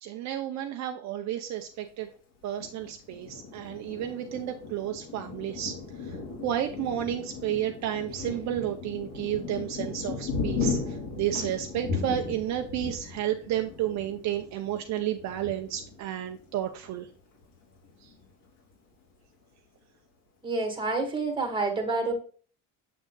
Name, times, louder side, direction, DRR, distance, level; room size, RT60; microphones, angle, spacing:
voice 1, 0.0-2.1 2.4-6.2 6.4-17.1 18.0-18.1, right 11 dB, 55° right, 5 dB, 0.7 m, -32 dB
Thunder, 2.6-16.9 17.4-17.5 17.8-18.4, left 4 dB, 70° left, 3.2 m, -36 dB
voice 2, 20.4-22.1, right 3 dB, 15° right, 3 dB, 1.8 m, -28 dB
7.8 x 6.4 x 2.3 m, 0.41 s
cardioid pair, 150°, 34 cm